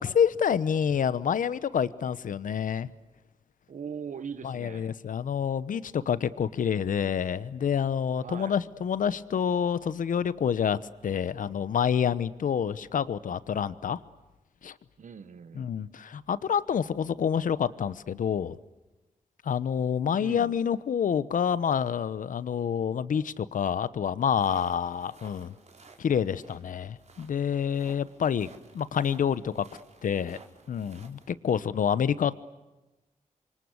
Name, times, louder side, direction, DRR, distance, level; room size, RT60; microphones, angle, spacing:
voice 1, 0.0-2.9 4.4-14.0 14.6-14.7 15.5-18.6 19.4-25.5 26.0-28.5 28.7-29.7 30.0-30.4 30.7-32.4, left 8 dB, 85° left, 16 dB, 1.0 m, -28 dB
voice 2, 3.7-4.9 8.2-8.6 15.0-15.7 20.2-20.5, right 6 dB, 70° right, 10 dB, 1.5 m, -40 dB
sound 1, 24.4-31.3, right 4 dB, 55° right, 4.1 m, -55 dB
28.5 x 25.0 x 8.2 m, 1.1 s
wide cardioid pair, 90°, 14 cm